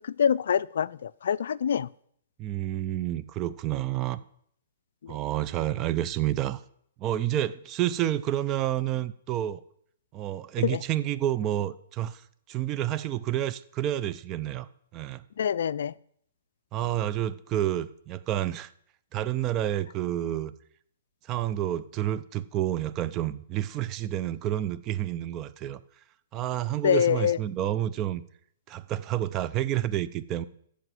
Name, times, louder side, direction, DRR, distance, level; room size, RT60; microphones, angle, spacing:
voice 1, 0.0-1.9 5.0-5.2 10.6-10.8 15.4-15.9 26.8-27.4, left 8 dB, 70° left, 0.3 m, -25 dB
voice 2, 2.4-4.2 5.1-6.6 7.0-9.6 10.1-12.2 12.5-15.2 16.7-18.7 19.1-20.5 21.3-25.8 26.3-28.2 28.7-30.5, right 12 dB, 30° right, 0.6 m, -29 dB
14.0 x 4.9 x 7.6 m
hypercardioid pair, 140°, 0 cm